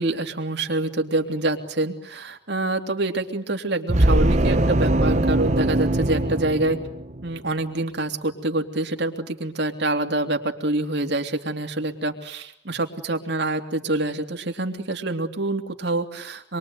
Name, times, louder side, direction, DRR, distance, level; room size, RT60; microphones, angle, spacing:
voice 1, 0.0-6.8 7.2-16.6, right 2 dB, 60° right, 4 dB, 3.1 m, -26 dB
sound 1, 3.9-7.4, right 1 dB, 35° right, 1.1 m, -21 dB
27.0 x 23.0 x 9.5 m, 0.70 s
head